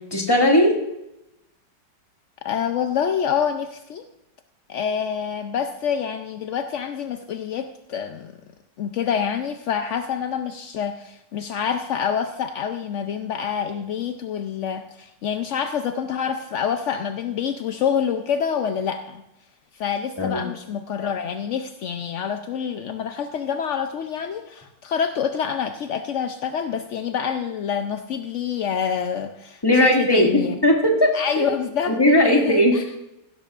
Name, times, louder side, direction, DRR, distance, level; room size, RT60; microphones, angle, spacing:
voice 1, 0.1-0.7 20.2-20.5 29.6-31.5 31.9-32.8, left 1 dB, 15° left, 0 dB, 2.0 m, -18 dB
voice 2, 2.4-4.1 4.7-8.3 8.8-19.2 19.7-30.6 31.1-32.8, left 7 dB, 70° left, 7 dB, 0.7 m, -27 dB
16.0 x 12.5 x 2.5 m, 0.87 s
omnidirectional pair, 1.9 m